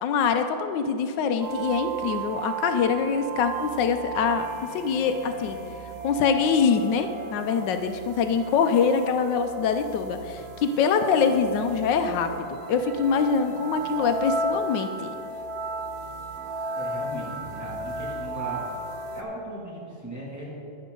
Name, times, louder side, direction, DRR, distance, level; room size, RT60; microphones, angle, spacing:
voice 1, 0.0-5.6 6.0-15.1, left 6 dB, 85° left, 8 dB, 1.3 m, -24 dB
sound 1, 1.4-19.2, right 2 dB, 60° right, 0.7 m, -34 dB
voice 2, 16.7-18.7 19.1-20.5, right 1 dB, 10° right, -6 dB, 2.3 m, -38 dB
11.0 x 10.5 x 3.8 m, 2.6 s
omnidirectional pair, 1.9 m